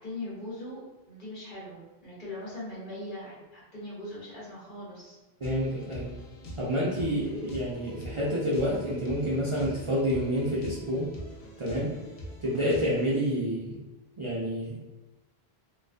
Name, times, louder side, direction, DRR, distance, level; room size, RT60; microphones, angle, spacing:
voice 1, 0.0-5.2, left 1 dB, 55° left, -8 dB, 1.1 m, -40 dB
sound 1, 5.4-13.1, right 1 dB, 90° left, 0.9 m, -43 dB
voice 2, 5.4-6.1 6.6-11.1 11.6-11.9 12.4-13.8 14.2-14.9, equal, 55° right, -6 dB, 0.3 m, -28 dB
2.4 x 2.2 x 2.4 m, 1.1 s
omnidirectional pair, 1.1 m